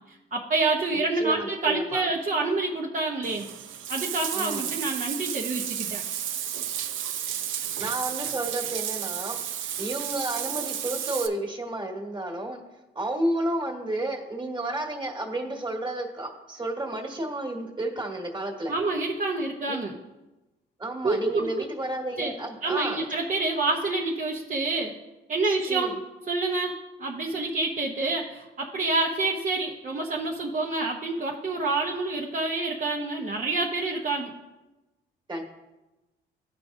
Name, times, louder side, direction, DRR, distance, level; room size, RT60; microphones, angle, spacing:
voice 1, 0.3-3.5 3.9-6.0 18.7-19.9 21.0-21.6 22.2-22.3 22.6-24.9 25.3-25.9 26.3-34.3, right 3 dB, 40° right, -2 dB, 0.9 m, -27 dB
voice 2, 0.9-2.1 4.3-4.7 7.8-12.6 12.9-18.7 19.7-19.8 20.8-23.0 25.4-26.0 35.3-35.4, right 1 dB, 25° right, 1 dB, 1.7 m, -31 dB
Bathtub (filling or washing), 3.2-11.3, right 10 dB, 80° right, 0.6 m, -32 dB
14.5 x 4.9 x 2.7 m, 1.1 s
cardioid pair, 90°, 20 cm